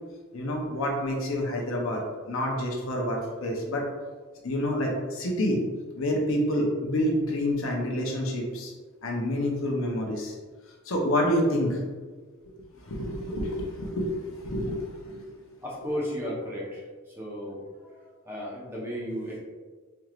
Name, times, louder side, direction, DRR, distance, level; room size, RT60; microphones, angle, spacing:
voice 1, 0.3-2.0 2.3-3.8 4.4-5.6 6.0-8.7 9.0-10.3 10.8-11.8 12.4-15.2 15.8-15.9, equal, 70° left, 0 dB, 0.7 m, -28 dB
voice 2, 15.6-16.8 17.2-17.6 18.3-19.4, equal, 10° right, -6 dB, 0.9 m, -33 dB
4.4 x 3.2 x 2.4 m, 1.4 s
head